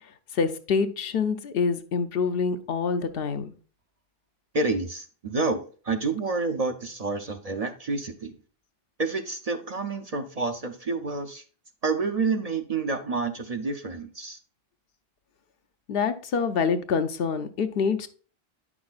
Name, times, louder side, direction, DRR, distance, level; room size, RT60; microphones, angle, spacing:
voice 1, 0.3-3.5 15.9-18.1, left 5 dB, 70° left, 0.8 m, -26 dB
voice 2, 4.5-8.4 9.0-11.4 11.8-14.4, right 3 dB, 45° right, 0.6 m, -29 dB
9.4 x 6.0 x 2.3 m
omnidirectional pair, 1.0 m